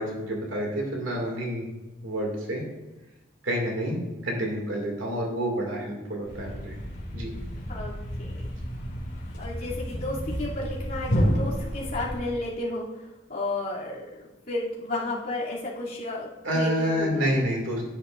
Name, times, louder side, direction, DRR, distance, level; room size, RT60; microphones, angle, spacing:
voice 1, 0.0-1.7 2.0-2.6 3.4-6.8 7.1-7.3 16.4-17.8, equal, 80° right, -1 dB, 2.4 m, -28 dB
Thump thud, 6.2-12.4, equal, 60° left, 2.6 m, -31 dB
voice 2, 7.7-8.3 9.4-12.9 13.3-14.1 14.5-17.3, left 2 dB, 45° left, -7 dB, 2.9 m, -32 dB
11.0 x 9.7 x 2.6 m, 1.1 s
head